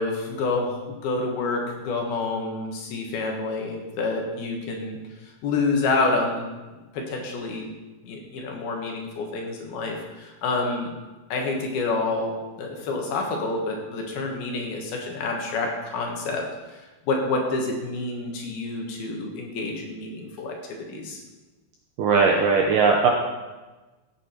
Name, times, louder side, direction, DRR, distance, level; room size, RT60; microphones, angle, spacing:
voice 1, 0.0-5.0 5.4-6.5 6.9-7.7 8.0-10.9 11.3-12.3 12.6-16.4 16.7-16.8 17.1-21.2, left 3 dB, 65° left, 1 dB, 3.2 m, -28 dB
voice 2, 22.0-23.1, right 4 dB, 75° right, 1 dB, 2.0 m, -19 dB
15.0 x 8.5 x 4.5 m, 1.2 s
omnidirectional pair, 5.0 m